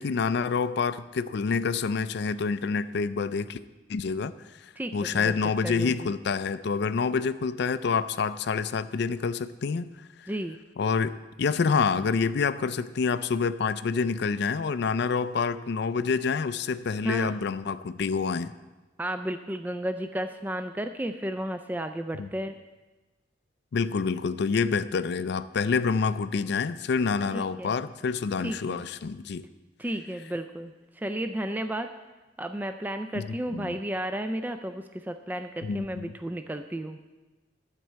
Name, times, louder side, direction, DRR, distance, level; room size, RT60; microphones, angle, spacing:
voice 1, 0.0-3.6 3.9-4.3 4.6-9.9 10.2-10.3 10.8-18.5 22.2-22.3 23.7-29.4 33.1-33.7 35.6-36.1, left 5 dB, 65° left, 14 dB, 0.4 m, -27 dB
voice 2, 4.8-5.3 5.6-6.1 10.3-10.6 17.0-17.4 19.0-22.5 27.3-27.7 28.4-28.8 29.8-31.9 32.4-37.0, right 1 dB, 10° right, 8 dB, 0.3 m, -33 dB
12.5 x 4.6 x 7.3 m, 1.2 s
head